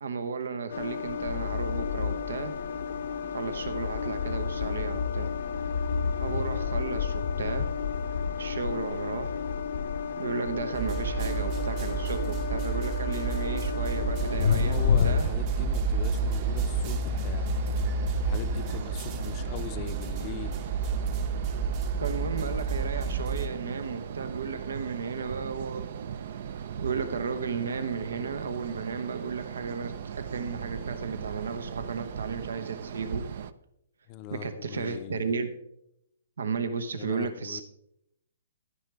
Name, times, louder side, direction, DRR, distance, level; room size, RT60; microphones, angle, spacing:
voice 1, 0.0-2.5 3.3-5.3 6.2-7.7 8.4-9.4 10.2-15.3 22.0-25.9 26.8-33.2 34.3-35.5 36.4-37.6, right 5 dB, 85° right, 1.0 m, -34 dB
sound 1, 0.7-15.3, left 6 dB, 65° left, 0.7 m, -30 dB
sound 2, 10.7-23.5, right 4 dB, 30° right, 0.9 m, -30 dB
sound 3, 14.2-33.5, right 8 dB, 55° right, 0.5 m, -39 dB
voice 2, 14.4-17.7 18.2-20.7 34.1-35.2 37.0-37.6, left 10 dB, 30° left, 0.6 m, -40 dB
11.0 x 9.6 x 3.4 m
hypercardioid pair, 150°, 0 cm